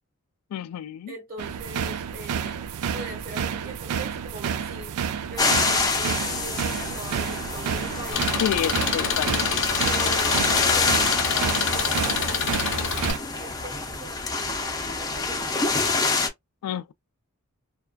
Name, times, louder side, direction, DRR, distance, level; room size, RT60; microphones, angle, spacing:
voice 1, 0.5-1.1 8.4-9.4 16.6-16.9, left 9 dB, 85° left, 0.3 m, -29 dB
voice 2, 1.1-5.0 5.3-8.3 9.8-15.9, right 2 dB, 40° right, 1.2 m, -41 dB
sound 1, 1.4-13.2, right 7 dB, 85° right, 0.3 m, -30 dB
sound 2, 5.4-16.3, left 3 dB, 15° left, 0.5 m, -27 dB
Engine, 8.1-13.1, left 6 dB, 60° left, 0.7 m, -27 dB
2.4 x 2.3 x 2.2 m
head